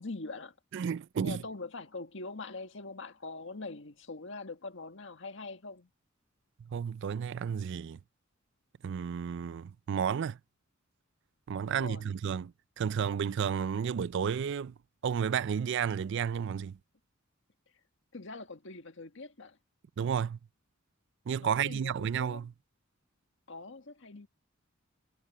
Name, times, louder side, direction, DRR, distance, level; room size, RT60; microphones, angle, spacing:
voice 1, 0.0-0.5 1.2-5.9 11.7-12.1 18.1-19.6 21.3-22.4 23.5-24.3, left 3 dB, 65° left, 1.7 m, -43 dB
voice 2, 0.7-1.4 6.7-8.0 8.8-10.4 11.5-14.7 15.0-16.8 20.0-20.4 21.3-22.5, right 7 dB, 60° right, 0.4 m, -32 dB
head